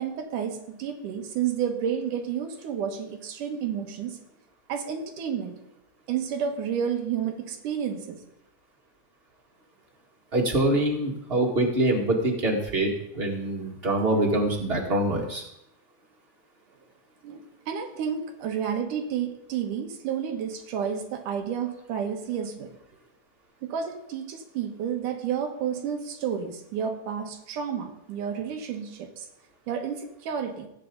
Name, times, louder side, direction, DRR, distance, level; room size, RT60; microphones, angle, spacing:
voice 1, 0.0-4.2 4.7-5.5 6.1-8.2 17.2-22.7 23.6-29.3 29.7-30.7, right 8 dB, 85° right, 4 dB, 3.0 m, -31 dB
voice 2, 10.3-15.4, right 1 dB, 25° right, 0 dB, 1.7 m, -25 dB
17.5 x 9.3 x 3.9 m, 0.82 s
omnidirectional pair, 3.5 m